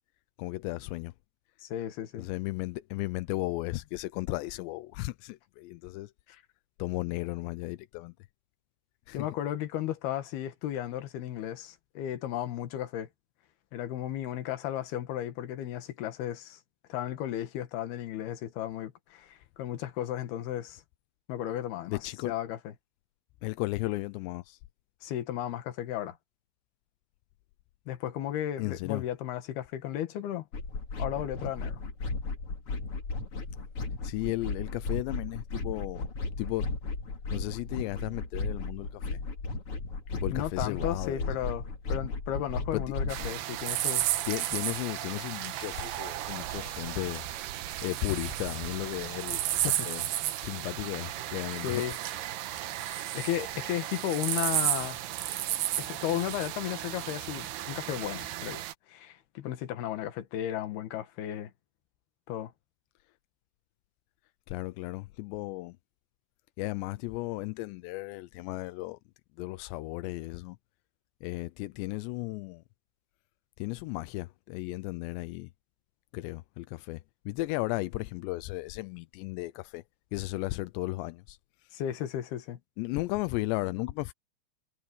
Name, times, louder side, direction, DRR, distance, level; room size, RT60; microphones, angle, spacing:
voice 1, 0.4-1.1 2.2-6.1 6.8-8.1 9.1-9.3 21.9-22.3 23.4-24.6 28.6-29.0 34.0-36.1 36.4-36.7 37.3-39.2 40.1-41.3 42.7-42.9 44.3-47.3 47.8-50.0 50.4-51.9 64.5-65.8 66.6-69.0 69.4-70.6 71.2-72.6 73.6-75.5 76.1-79.8 80.1-81.8 82.8-84.1, left 20 dB, 90° left, 2.9 m, -35 dB
voice 2, 1.6-2.3 9.1-13.1 13.7-16.6 16.9-20.8 21.3-22.6 25.0-26.2 27.9-30.4 31.0-31.8 40.3-44.0 49.6-49.9 51.6-51.9 52.9-55.0 55.8-61.5 62.3-62.5 81.7-82.6, left 11 dB, 70° left, 3.4 m, -34 dB
sound 1, 30.5-43.3, left 3 dB, 35° left, 3.3 m, -35 dB
sound 2, 43.1-58.7, right 13 dB, 70° right, 3.0 m, -33 dB
omnidirectional pair, 5.0 m